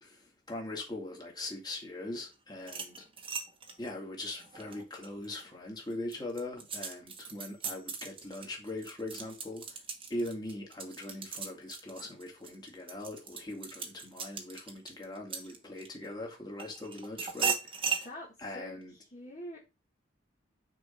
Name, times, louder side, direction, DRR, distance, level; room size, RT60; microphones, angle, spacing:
voice 1, 0.0-3.1 3.8-9.8 10.1-18.1 18.4-18.9, left 1 dB, 25° left, 2.1 m, -41 dB
sound 1, 2.6-5.4 5.9-16.1 16.6-18.1, right 6 dB, 30° right, 1.2 m, -38 dB
voice 2, 18.0-19.6, left 1 dB, 40° left, 1.5 m, -46 dB
6.2 x 4.5 x 4.3 m
head